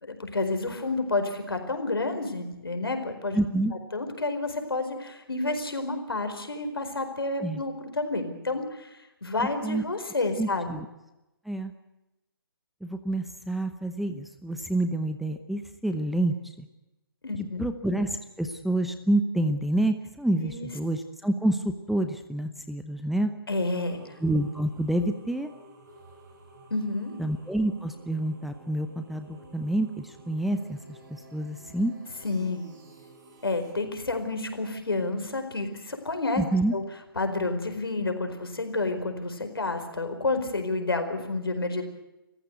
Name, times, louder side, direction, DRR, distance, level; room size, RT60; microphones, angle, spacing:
voice 1, 0.0-3.4 3.9-10.8 17.2-17.6 20.4-20.7 23.5-24.0 26.7-27.1 32.2-32.7 33.4-36.4 36.7-36.8 37.1-41.8, left 2 dB, 75° left, 7 dB, 4.7 m, -30 dB
voice 2, 3.3-3.7 7.4-7.6 9.6-9.8 10.4-10.9 11.5-11.7 12.8-16.7 17.6-23.3 24.2-25.5 27.2-31.0 31.3-31.9 36.4-36.7, right 1 dB, ahead, 9 dB, 0.8 m, -28 dB
sound 1, 23.7-33.7, right 2 dB, 50° right, 6.8 m, -52 dB
27.5 x 15.0 x 8.1 m, 0.96 s
figure-of-eight pair, 140°, 12 cm